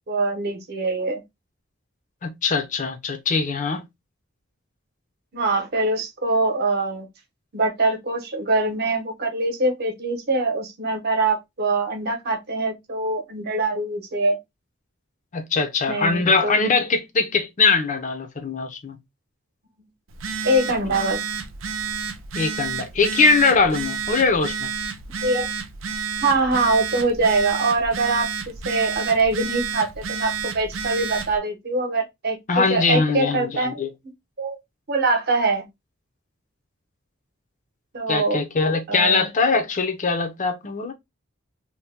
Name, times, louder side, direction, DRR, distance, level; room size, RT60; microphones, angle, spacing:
voice 1, 0.1-1.2 5.3-7.1 7.5-14.4 15.9-16.6 20.4-21.2 25.2-25.5 26.2-33.8 34.4-34.5 34.9-35.6 37.9-38.4 38.9-39.3, right 2 dB, 55° right, 0.9 m, -23 dB
voice 2, 2.2-3.8 15.3-19.0 22.3-24.7 32.5-33.9 38.1-40.9, left 4 dB, 40° left, 0.6 m, -21 dB
Telephone, 20.1-31.4, right 6 dB, 85° right, 0.6 m, -30 dB
2.8 x 2.2 x 3.4 m
head